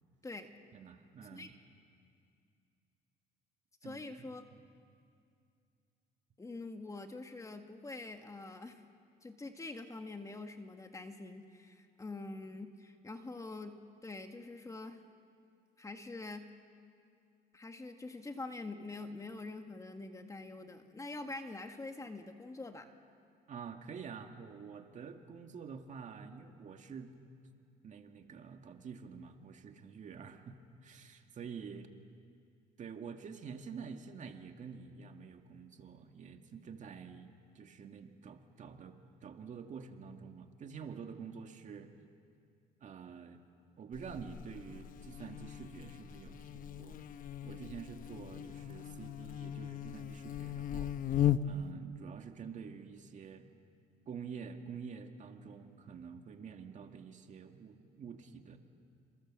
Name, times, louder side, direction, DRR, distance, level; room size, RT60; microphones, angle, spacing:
voice 1, 0.7-1.5 3.8-4.0 4.5-4.7 23.5-27.1 27.8-31.9 32.8-41.9 42.8-43.4 43.8-47.0 47.4-50.9 51.4-53.5 54.1-58.6, right 6 dB, 45° right, 5 dB, 2.2 m, -48 dB
voice 2, 3.8-4.4 6.4-8.8 9.2-15.0 15.8-16.5 17.5-22.9, left 2 dB, 20° left, 6 dB, 1.8 m, -45 dB
Buzz, 43.9-51.7, left 10 dB, 55° left, 0.9 m, -38 dB
29.0 x 27.0 x 7.6 m, 2.4 s
cardioid pair, 110°, 17 cm